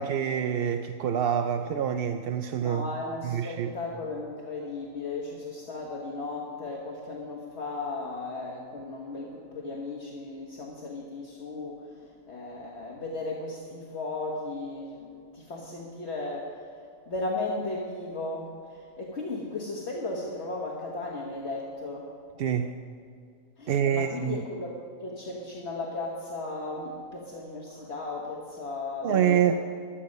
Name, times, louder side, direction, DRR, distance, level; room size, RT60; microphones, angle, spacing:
voice 1, 0.0-2.9 3.2-3.7 22.4-22.8 23.7-24.4 29.0-29.5, right 8 dB, 65° right, 8 dB, 0.6 m, -26 dB
voice 2, 2.6-15.1 15.3-22.1 23.6-29.6, left 2 dB, 55° left, -2 dB, 1.6 m, -36 dB
16.0 x 11.5 x 5.2 m, 2.4 s
omnidirectional pair, 1.4 m